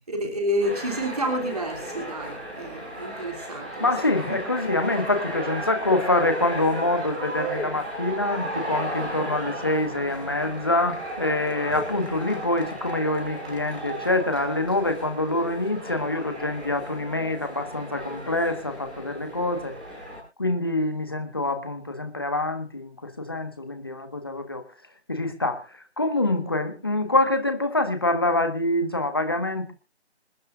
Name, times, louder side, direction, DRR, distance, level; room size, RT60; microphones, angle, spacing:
voice 1, 0.1-3.9, equal, 35° right, 3.0 m, -29 dB
sound 1, 0.6-20.2, right 1 dB, 5° right, 2.4 m, -35 dB
voice 2, 3.8-19.7 20.4-24.6 25.1-29.7, left 2 dB, 20° left, 1.5 m, -26 dB
27.0 x 10.0 x 2.5 m
figure-of-eight pair, 170°, 33 cm